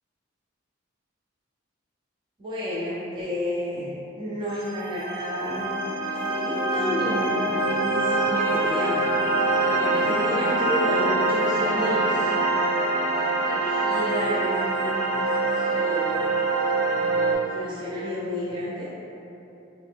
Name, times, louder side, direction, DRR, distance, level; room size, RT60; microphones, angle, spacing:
voice 1, 2.4-5.7 6.0-12.3 13.3-16.3 17.3-19.1, left 1 dB, 25° right, -9 dB, 0.4 m, -31 dB
sound 1, 4.5-17.3, right 2 dB, 80° right, 0.5 m, -24 dB
3.0 x 2.7 x 3.3 m, 2.8 s
head